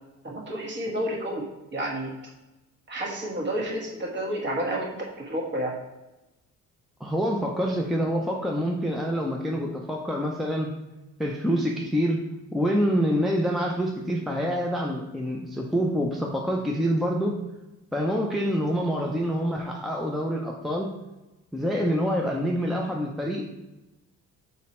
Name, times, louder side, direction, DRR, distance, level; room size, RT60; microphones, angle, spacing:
voice 1, 0.2-2.1 2.9-5.8, right 1 dB, 35° right, -1 dB, 1.5 m, -30 dB
voice 2, 7.0-10.7 11.2-12.3 12.5-17.4 17.9-20.9 21.5-23.5, equal, ahead, -1 dB, 0.5 m, -26 dB
5.9 x 4.2 x 4.3 m, 1.0 s
cardioid pair, 155°, 30 cm